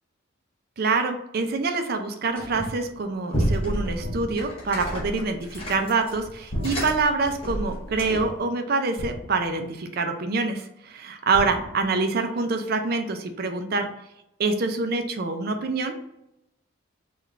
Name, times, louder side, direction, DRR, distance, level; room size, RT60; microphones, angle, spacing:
voice 1, 0.8-13.9 14.4-16.1, right 3 dB, 45° right, 6 dB, 0.4 m, -26 dB
sound 1, 2.4-2.9 3.3-8.4, equal, 25° left, 0.8 m, -30 dB
sound 2, 4.0-4.8 6.5-7.3 9.0-9.7 11.3-12.0, equal, 45° left, 1.1 m, -35 dB
3.5 x 2.3 x 3.1 m, 0.84 s
head